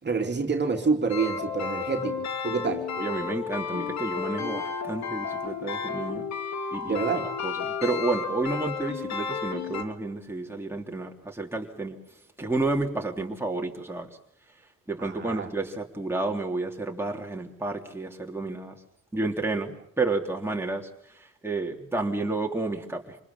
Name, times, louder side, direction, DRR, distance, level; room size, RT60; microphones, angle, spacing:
voice 1, 0.0-2.9 6.9-7.3 15.0-15.5, right 4 dB, 35° right, 2 dB, 2.8 m, -28 dB
sound 1, 1.1-9.8, left 5 dB, 65° left, 2.6 m, -32 dB
voice 2, 3.0-6.2 6.7-6.9 7.4-12.0 12.4-14.1 14.9-18.7 19.1-23.2, right 3 dB, 10° right, 1 dB, 3.3 m, -30 dB
27.0 x 20.5 x 7.3 m, 0.74 s
cardioid pair, 90°, 30 cm